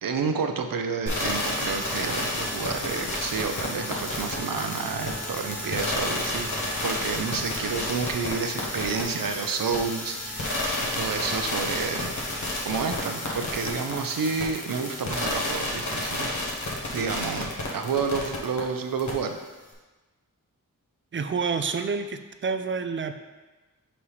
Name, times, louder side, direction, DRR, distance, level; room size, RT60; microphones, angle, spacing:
voice 1, 0.0-6.5 6.8-12.1 12.6-19.4, right 5 dB, 85° right, 5 dB, 0.6 m, -30 dB
sound 1, 1.1-18.6 19.0-19.1, left 1 dB, 60° left, 1.3 m, -31 dB
voice 2, 21.1-23.1, right 5 dB, 35° right, 8 dB, 0.4 m, -28 dB
5.8 x 5.4 x 3.2 m, 1.2 s
wide cardioid pair, 100°, 33 cm